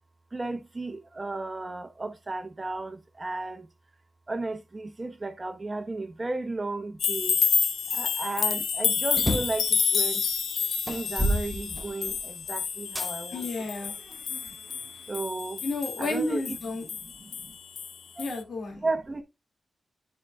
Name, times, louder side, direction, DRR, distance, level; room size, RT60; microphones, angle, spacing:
voice 1, 0.3-3.7 4.3-7.4 7.9-10.2 10.9-13.4 15.1-15.6 16.0-16.6 17.2-17.5 18.2-18.3 18.8-19.2, right 2 dB, 30° right, 1.0 m, -34 dB
sound 1, 7.0-17.9 18.2-18.4, left 7 dB, 90° left, 0.5 m, -29 dB
sound 2, 9.1-9.7 10.3-10.4 10.9-12.3 13.0-13.1 13.8-14.9, equal, 5° right, 1.6 m, -30 dB
voice 2, 13.3-14.0 15.6-16.8 18.2-18.8, left 2 dB, 70° left, 2.3 m, -31 dB
9.6 x 4.9 x 2.3 m
cardioid pair, 60°, 0 cm